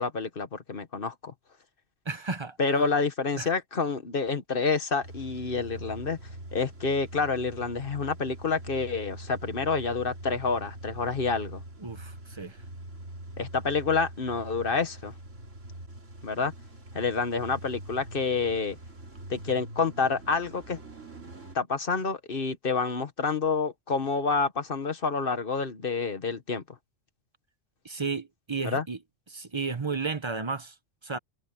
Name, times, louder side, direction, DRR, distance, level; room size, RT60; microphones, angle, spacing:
voice 1, 0.0-1.3 2.6-6.2 6.5-11.6 13.4-15.1 16.2-16.5 16.9-18.8 19.3-20.8 21.5-26.6 28.6-28.8, left 4 dB, 45° left, 1.4 m, -28 dB
voice 2, 2.1-2.6 3.4-3.5 11.8-12.6 27.8-29.0 29.3-30.7 31.0-31.2, right 4 dB, 25° right, 0.9 m, -33 dB
Car / Engine starting / Idling, 5.0-21.6, right 1 dB, 85° right, 3.6 m, -43 dB
omnidirectional pair, 1.3 m